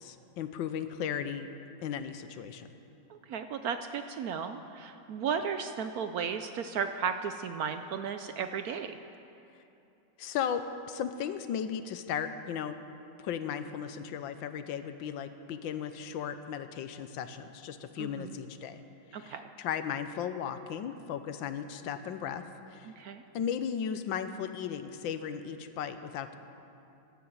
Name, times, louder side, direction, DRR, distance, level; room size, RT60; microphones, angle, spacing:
voice 1, 0.0-1.5 1.8-2.7 10.2-12.8 13.2-18.8 19.1-22.4 22.7-22.9 23.3-26.3, left 8 dB, 90° left, 10 dB, 1.5 m, -36 dB
voice 2, 3.1-8.9 18.0-18.4 19.1-19.5 22.8-23.2, right 6 dB, 70° right, 8 dB, 0.9 m, -35 dB
14.0 x 12.0 x 7.8 m, 2.8 s
omnidirectional pair, 2.0 m